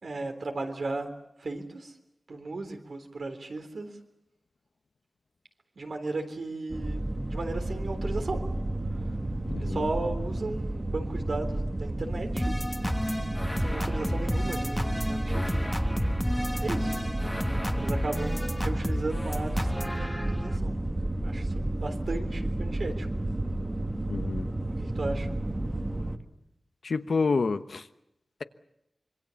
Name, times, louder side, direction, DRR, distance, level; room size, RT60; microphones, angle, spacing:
voice 1, 0.0-1.1 1.4-1.9 2.3-3.9 5.8-8.4 9.6-12.5 13.6-15.8 16.6-17.0 17.7-23.1 24.8-25.3, right 3 dB, 75° right, 5 dB, 3.7 m, -36 dB
sound 1, 6.7-26.2, right 1 dB, 25° right, 1.7 m, -31 dB
voice 2, 9.5-9.9 24.1-24.5 26.8-27.8, left 4 dB, 80° left, 10 dB, 1.1 m, -28 dB
sound 2, 12.4-20.6, equal, 10° left, 1.3 m, -31 dB
26.0 x 23.5 x 7.2 m, 0.85 s
wide cardioid pair, 80°, 0 cm